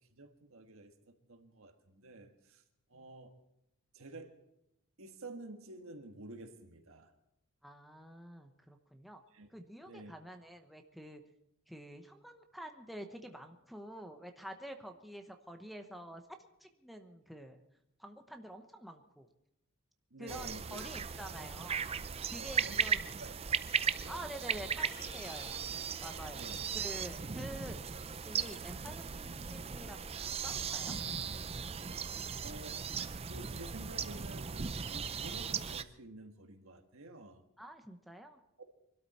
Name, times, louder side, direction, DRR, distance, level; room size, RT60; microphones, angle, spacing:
voice 1, 0.0-2.6 2.9-3.3 3.9-4.3 5.0-7.1 9.3-9.5 9.9-10.1 20.1-20.8 22.4-22.9 23.2-23.4 24.0-24.3 26.3-26.6 32.4-32.8 33.2-37.4, right 2 dB, 65° right, 6 dB, 1.6 m, -50 dB
voice 2, 7.6-9.2 9.5-11.2 11.7-16.2 16.6-17.6 18.0-19.3 20.2-21.9 22.3-23.1 24.1-25.6 26.0-31.0 37.6-38.4, right 1 dB, ahead, 4 dB, 0.9 m, -48 dB
sound 1, 20.3-35.8, right 6 dB, 30° right, 0.5 m, -37 dB
sound 2, 24.8-28.3, left 2 dB, 20° left, 2.7 m, -57 dB
23.5 x 13.0 x 4.3 m, 0.83 s
head